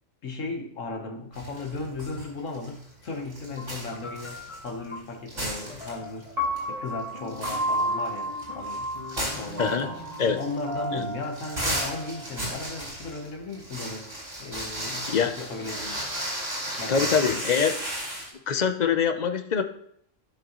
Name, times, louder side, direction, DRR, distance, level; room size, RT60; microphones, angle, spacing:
voice 1, 0.2-6.3 6.7-10.0 10.4-14.1 14.4-16.0 16.8-17.4, left 3 dB, 80° left, 2 dB, 1.6 m, -36 dB
sound 1, 1.3-2.3 2.5-5.0 5.3-6.2 6.6-6.7 7.1-18.3, right 1 dB, 70° right, 4.7 m, -34 dB
sound 2, 3.6-10.6, left 3 dB, 25° left, 1.2 m, -44 dB
Piano, 6.4-12.5, equal, 50° right, 2.0 m, -32 dB
voice 2, 16.9-17.8 18.5-19.6, left 6 dB, 45° left, 8 dB, 0.7 m, -24 dB
15.5 x 6.4 x 3.0 m, 0.69 s
omnidirectional pair, 1.3 m